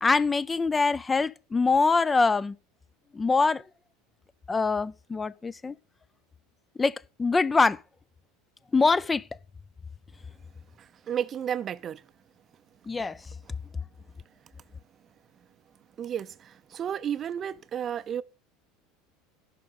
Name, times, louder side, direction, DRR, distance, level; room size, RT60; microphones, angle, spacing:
voice 1, 0.0-2.5 3.1-3.6 4.5-5.7 6.8-7.8 8.7-9.2 12.9-13.2, left 4 dB, 20° left, 0.4 m, -24 dB
voice 2, 11.1-12.0 16.0-18.2, right 9 dB, 35° right, 0.5 m, -32 dB
11.0 x 5.1 x 7.3 m
figure-of-eight pair, 75°, 0 cm